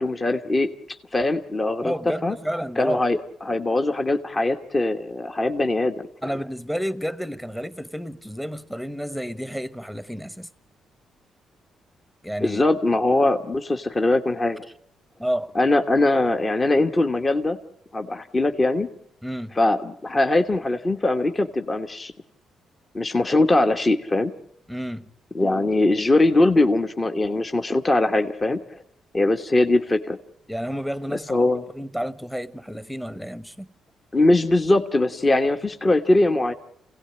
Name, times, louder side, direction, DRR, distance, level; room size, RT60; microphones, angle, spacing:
voice 1, 0.0-1.9 2.2-2.3 2.8-6.3 12.4-14.7 15.5-17.6 17.9-18.9 19.6-22.1 22.9-24.3 25.3-28.8 29.1-30.2 31.1-31.6 34.1-36.5, left 2 dB, 25° left, 1.2 m, -21 dB
voice 2, 1.8-3.0 6.2-10.5 12.2-12.6 15.2-15.5 19.2-19.6 24.7-25.0 30.5-31.4 31.7-33.7, equal, ahead, 1.1 m, -30 dB
27.5 x 17.5 x 8.8 m
cardioid pair, 90°, 0 cm